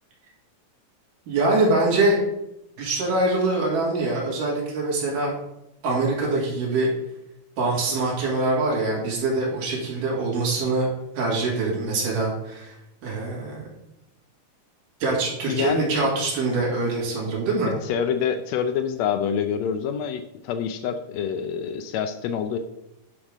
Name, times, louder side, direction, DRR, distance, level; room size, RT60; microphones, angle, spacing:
voice 1, 1.3-2.2 2.8-5.4 5.8-6.9 7.6-10.9 11.2-12.7 13.0-13.7 15.0-17.7, right 2 dB, 85° right, -5 dB, 3.8 m, -24 dB
voice 2, 15.5-15.9 17.8-22.6, left 8 dB, 85° left, 7 dB, 1.5 m, -26 dB
10.0 x 3.6 x 6.4 m, 0.86 s
omnidirectional pair, 3.7 m